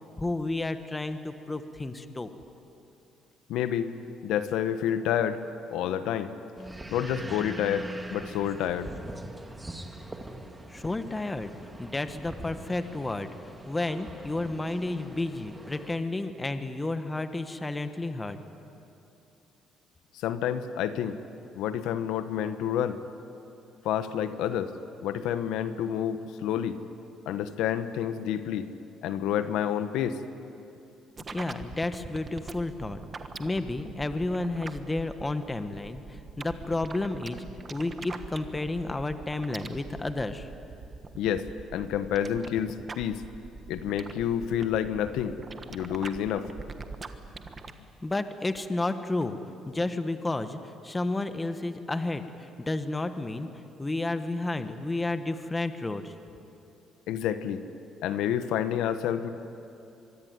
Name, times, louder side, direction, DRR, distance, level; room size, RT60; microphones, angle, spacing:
voice 1, 0.2-2.3 10.7-11.5 11.8-13.3 13.7-18.4 31.3-33.0 33.4-37.4 37.7-40.5 48.0-49.4 49.7-56.1, left 2 dB, 15° left, 9 dB, 1.3 m, -31 dB
voice 2, 3.5-3.9 4.2-5.4 5.7-6.3 6.9-8.9 20.1-21.2 21.5-23.0 23.8-24.7 25.0-26.8 27.3-28.7 29.0-30.2 41.2-41.5 41.7-43.2 43.7-45.4 45.7-46.5 57.1-57.6 58.0-59.3, left 9 dB, 85° left, 11 dB, 1.2 m, -29 dB
sound 1, 6.6-16.0, right 1 dB, 10° right, 2.0 m, -42 dB
sound 2, 31.2-47.7, right 4 dB, 30° right, 1.4 m, -43 dB
24.5 x 23.5 x 9.7 m, 2.8 s
cardioid pair, 135°, 0 cm